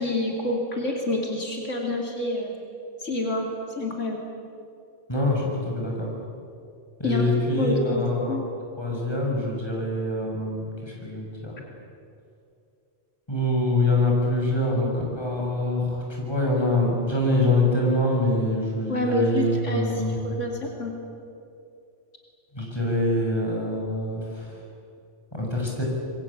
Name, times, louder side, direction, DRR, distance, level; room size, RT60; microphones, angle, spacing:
voice 1, 0.0-2.5 3.0-3.5 3.8-4.2 7.0-7.2 7.6-8.0 8.3-8.4 18.9-21.0, left 1 dB, 75° left, 0 dB, 3.3 m, -27 dB
voice 2, 5.1-6.1 7.0-8.3 8.8-11.6 13.3-20.2 22.5-24.5 25.3-25.8, left 1 dB, 20° left, -2 dB, 6.7 m, -25 dB
26.0 x 22.5 x 8.7 m, 2.5 s
omnidirectional pair, 1.3 m